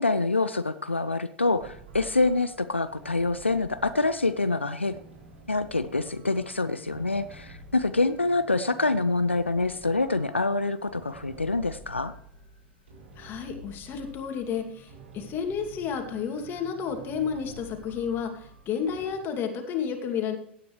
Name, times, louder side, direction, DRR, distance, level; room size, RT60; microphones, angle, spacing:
voice 1, 0.0-5.0 5.5-12.1, left 3 dB, 90° left, 11 dB, 0.5 m, -26 dB
sound 1, 1.5-19.1, right 2 dB, 70° right, 3.9 m, -49 dB
voice 2, 13.2-20.4, left 7 dB, 35° left, 3 dB, 2.5 m, -31 dB
16.5 x 9.4 x 3.3 m, 0.67 s
figure-of-eight pair, 90°, 6 cm